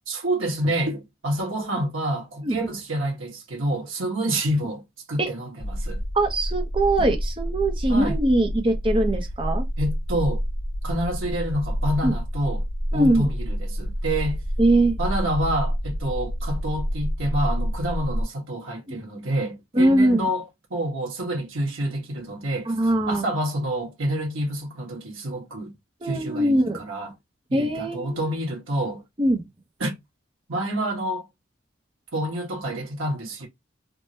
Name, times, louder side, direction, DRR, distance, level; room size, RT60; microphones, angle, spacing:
voice 1, 0.1-6.0 7.9-8.2 9.8-10.4 10.8-12.7 12.9-14.4 15.0-22.8 23.1-25.7 26.0-27.1 27.5-29.0 29.8-29.9 30.5-31.3 32.1-33.5, right 1 dB, 80° right, 1.4 m, -28 dB
sound 1, 5.6-18.2, equal, 40° left, 1.1 m, -28 dB
voice 2, 6.1-9.7 12.0-12.1 12.9-13.3 14.6-15.0 19.7-20.3 22.7-23.2 26.0-26.8 27.5-28.4 29.2-29.4, right 1 dB, 25° right, 0.6 m, -21 dB
3.5 x 2.1 x 2.7 m
head